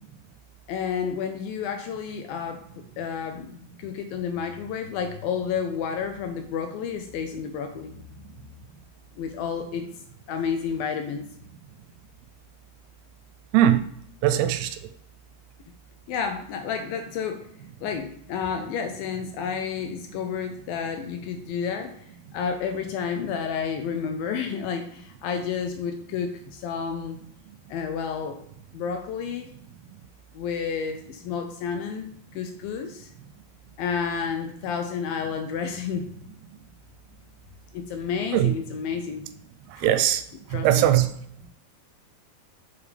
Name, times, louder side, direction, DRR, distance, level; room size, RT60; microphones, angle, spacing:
voice 1, 0.7-2.6 3.0-7.9 9.2-9.9 10.3-11.3 16.1-17.5 17.8-21.9 22.3-27.2 27.7-28.4 28.7-29.5 30.3-33.1 33.8-36.1 37.7-39.3 39.8-40.0 40.5-40.9, left 6 dB, 80° left, 2.2 m, -30 dB
voice 2, 14.2-14.7 38.3-38.5 39.8-40.2 40.6-41.1, right 12 dB, 85° right, 2.5 m, -19 dB
7.1 x 5.0 x 3.4 m
omnidirectional pair, 4.5 m